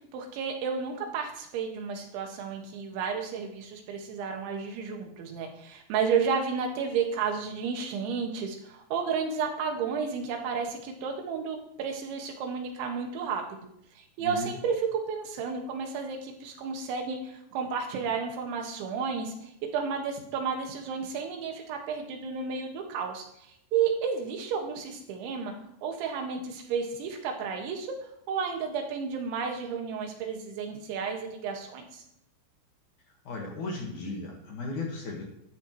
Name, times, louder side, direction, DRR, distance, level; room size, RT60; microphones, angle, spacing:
voice 1, 0.1-13.4 14.0-23.2 23.7-25.5 25.8-27.9 28.3-32.0, right 6 dB, 90° right, 3 dB, 4.0 m, -32 dB
voice 2, 14.2-14.5 33.1-35.2, left 3 dB, 55° left, 0 dB, 2.5 m, -36 dB
12.5 x 12.5 x 3.1 m, 0.75 s
omnidirectional pair, 5.2 m